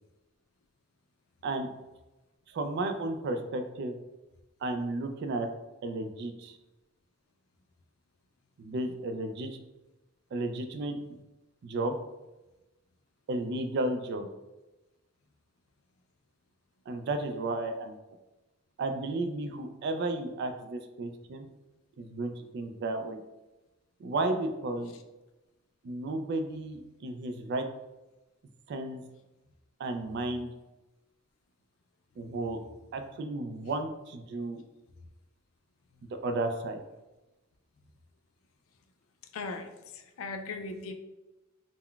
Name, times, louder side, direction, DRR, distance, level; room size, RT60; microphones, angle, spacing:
voice 1, 2.5-3.9 4.6-5.5 5.8-6.6 8.6-9.6 10.3-11.0 11.6-12.0 13.3-14.3 16.9-18.0 18.8-21.5 22.0-23.2 24.0-24.9 25.8-27.7 28.7-29.0 29.8-30.5 32.2-32.6 32.9-34.6 36.2-36.8, right 2 dB, 55° right, 6 dB, 0.3 m, -33 dB
voice 2, 39.3-40.9, left 3 dB, 80° left, 5 dB, 0.4 m, -38 dB
3.7 x 2.1 x 2.3 m, 1.0 s
head